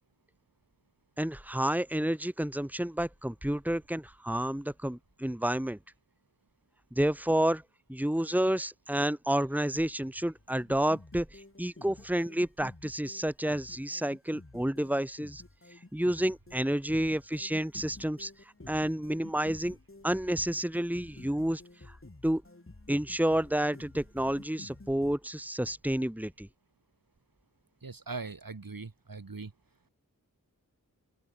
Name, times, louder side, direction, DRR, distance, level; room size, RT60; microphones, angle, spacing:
voice 1, 1.2-5.8 7.0-7.6 7.9-15.4 15.9-18.3 18.7-19.8 20.0-21.6 22.2-22.4 22.9-26.5, right 1 dB, 5° right, 2.3 m, -30 dB
sound 1, 10.4-25.2, left 2 dB, 40° left, 7.9 m, -51 dB
voice 2, 27.8-29.5, right 4 dB, 75° right, 6.1 m, -40 dB
open air
wide cardioid pair, 70°, 34 cm